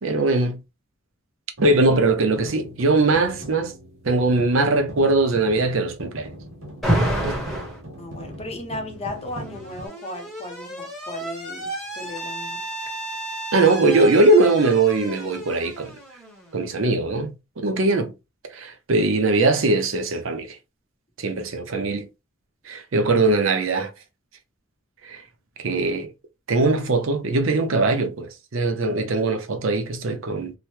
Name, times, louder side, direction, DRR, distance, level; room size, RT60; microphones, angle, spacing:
voice 1, 0.0-0.6 1.6-3.7 4.0-6.3 7.2-7.4 13.5-15.9 16.5-18.1 18.5-20.6 21.2-22.1 22.7-23.9 25.0-25.2 25.6-26.1 26.5-30.5, right 2 dB, 65° right, 0.6 m, -21 dB
sound 1, 1.6-9.9, equal, 85° right, 1.1 m, -40 dB
Alarm, 6.8-7.8 9.0-16.7, right 1 dB, ahead, 1.0 m, -30 dB
voice 2, 8.0-12.6, left 2 dB, 30° left, 0.7 m, -35 dB
2.9 x 2.1 x 3.0 m
head